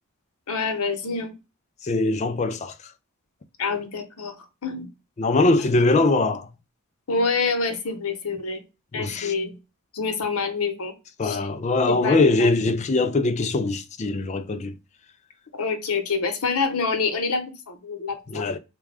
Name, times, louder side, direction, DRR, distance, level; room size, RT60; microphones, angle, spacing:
voice 1, 0.5-1.3 3.6-4.3 4.6-4.9 7.1-8.6 8.9-9.5 9.9-10.9 11.2-11.4 11.9-12.5 15.6-18.4, left 4 dB, 85° left, 0.9 m, -26 dB
voice 2, 1.8-2.7 5.2-6.5 8.9-9.3 11.2-14.7 18.3-18.6, left 2 dB, 30° left, 0.3 m, -22 dB
3.6 x 2.3 x 3.3 m
head